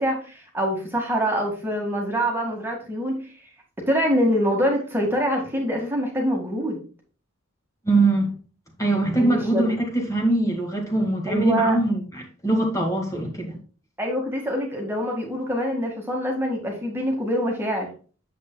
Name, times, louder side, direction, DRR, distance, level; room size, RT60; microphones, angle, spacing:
voice 1, 0.0-3.2 3.9-6.8 9.2-9.6 11.3-11.8 14.0-17.9, equal, 10° right, 0 dB, 1.9 m, -25 dB
voice 2, 7.9-8.3 8.8-13.6, right 2 dB, 15° left, 1 dB, 1.9 m, -22 dB
9.3 x 7.5 x 2.3 m, 0.37 s
head